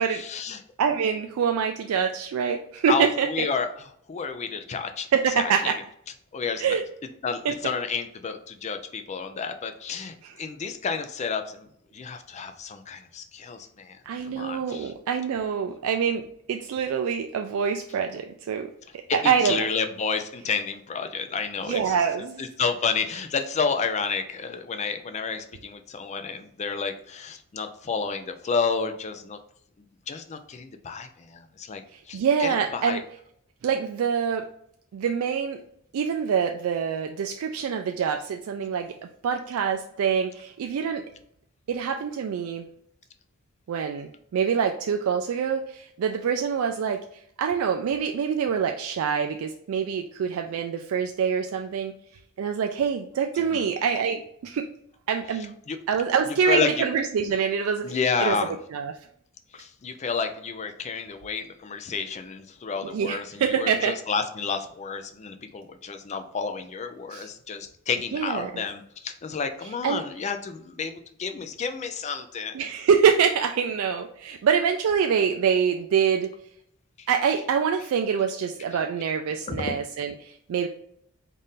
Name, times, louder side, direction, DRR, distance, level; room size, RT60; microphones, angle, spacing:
voice 1, 0.0-0.6 2.9-3.7 4.1-5.1 5.4-5.7 6.3-6.8 7.2-11.7 11.9-14.0 14.2-14.9 19.1-22.0 22.4-29.4 30.1-31.8 32.1-33.0 53.5-53.7 55.7-55.8 56.5-56.9 57.8-58.6 59.5-72.6 77.0-77.1 79.5-79.8, left 5 dB, 30° left, 8 dB, 0.4 m, -30 dB
voice 2, 0.8-3.5 5.1-5.8 6.6-6.8 7.4-7.5 10.2-10.3 14.1-18.7 19.3-19.7 21.7-22.4 32.1-33.0 33.6-34.4 34.9-35.6 35.9-38.9 39.2-41.0 41.7-42.6 43.7-47.0 47.4-51.9 52.4-54.7 55.1-55.5 55.9-58.4 58.7-58.9 62.8-64.0 67.1-67.3 68.1-68.6 69.8-70.0 72.5-76.3 77.1-80.7, right 7 dB, 70° right, 5 dB, 0.3 m, -25 dB
4.0 x 2.5 x 3.5 m, 0.69 s
head